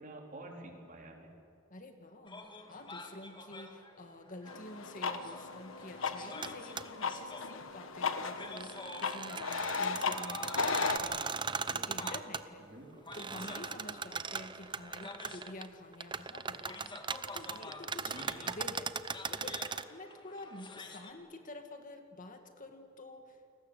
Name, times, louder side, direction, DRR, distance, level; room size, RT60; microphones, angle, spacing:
voice 1, 0.0-1.3 12.6-13.1 18.0-18.5 21.1-21.2, right 1 dB, 40° right, 1 dB, 3.9 m, -49 dB
voice 2, 1.7-11.4 11.7-12.7 13.1-23.4, left 2 dB, 40° left, 6 dB, 2.0 m, -49 dB
sound 1, 2.3-21.1, left 3 dB, 20° left, 2.1 m, -49 dB
sound 2, 4.5-11.0, left 4 dB, 65° left, 1.4 m, -36 dB
sound 3, 6.4-6.5 6.8-6.9 8.4-12.4 13.1-15.7 15.9-19.8, right 5 dB, 20° right, 0.7 m, -38 dB
29.5 x 21.0 x 8.2 m, 2.3 s
head